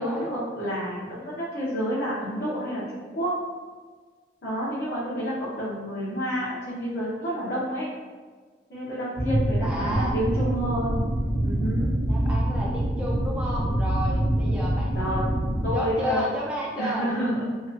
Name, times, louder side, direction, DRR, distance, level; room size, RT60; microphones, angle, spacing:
voice 1, 0.0-2.8 3.1-3.4 4.4-7.9 8.7-11.0 11.4-11.9 14.9-15.3 15.6-16.3 16.8-17.5, equal, 70° left, -10 dB, 0.8 m, -29 dB
sound 1, 9.2-15.7, right 1 dB, 70° right, 0.7 m, -25 dB
voice 2, 9.6-10.1 12.1-15.3 15.7-17.1, equal, 5° right, -4 dB, 0.5 m, -32 dB
2.9 x 2.2 x 2.5 m, 1.4 s
head